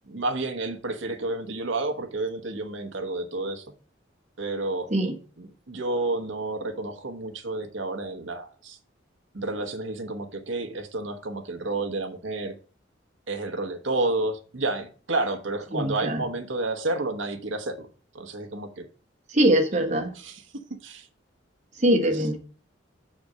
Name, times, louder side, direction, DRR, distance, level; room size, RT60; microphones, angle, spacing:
voice 1, 0.1-3.6 4.4-4.9 5.7-8.8 9.3-12.5 13.3-17.9 18.1-18.9 20.1-20.4 20.8-21.1 22.1-22.2, right 2 dB, 80° right, 5 dB, 1.1 m, -30 dB
voice 2, 15.7-16.2 19.3-20.1 21.8-22.4, right 1 dB, 35° right, 3 dB, 1.3 m, -22 dB
6.7 x 4.3 x 6.3 m, 0.39 s
head